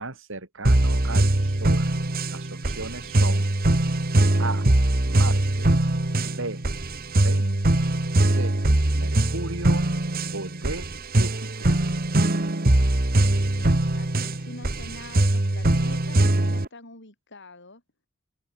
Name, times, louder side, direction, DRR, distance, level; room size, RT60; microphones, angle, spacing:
voice 1, 0.0-1.9 2.3-3.5 4.4-4.7 5.1-5.7 6.2-6.6 7.2-7.9 8.2-8.6 8.9-9.9 10.3-11.8, right 2 dB, 65° right, 3.4 m, -36 dB
sound 1, 0.6-16.7, right 1 dB, 45° right, 1.5 m, -22 dB
voice 2, 13.3-17.8, left 2 dB, 55° left, 7.2 m, -45 dB
open air
head